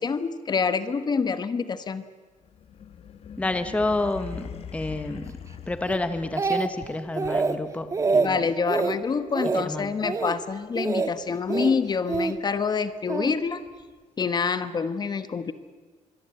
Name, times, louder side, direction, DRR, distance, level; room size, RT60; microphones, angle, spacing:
voice 1, 0.0-2.0 8.2-13.6 14.2-15.5, left 5 dB, 35° left, 12 dB, 1.2 m, -27 dB
sound 1, 2.4-6.7, left 7 dB, 50° left, 1.6 m, -41 dB
voice 2, 3.4-5.3 5.7-8.4 9.6-9.9, left 2 dB, 10° left, 10 dB, 1.0 m, -29 dB
Speech, 5.9-6.9 7.2-7.6 7.9-8.3 8.7-9.0 9.3-9.7 10.0-10.3 10.8-11.1 11.5-12.3 13.1-13.3, right 4 dB, 25° right, 1.5 m, -25 dB
25.5 x 22.5 x 8.8 m, 1.4 s
cardioid pair, 160°, 13 cm